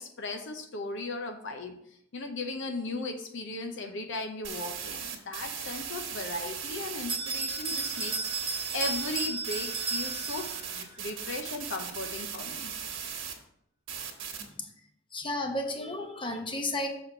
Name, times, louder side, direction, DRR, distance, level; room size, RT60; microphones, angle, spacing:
voice 1, 0.0-1.8 2.1-12.7, left 2 dB, 65° left, 5 dB, 0.8 m, -37 dB
sound 1, 4.4-13.3 13.9-14.4, right 7 dB, 65° right, 1.3 m, -38 dB
Bell, 7.1-10.8, right 4 dB, 25° right, 0.8 m, -34 dB
voice 2, 15.1-16.9, left 1 dB, 25° left, 3 dB, 0.9 m, -33 dB
6.5 x 4.2 x 5.9 m, 0.73 s
head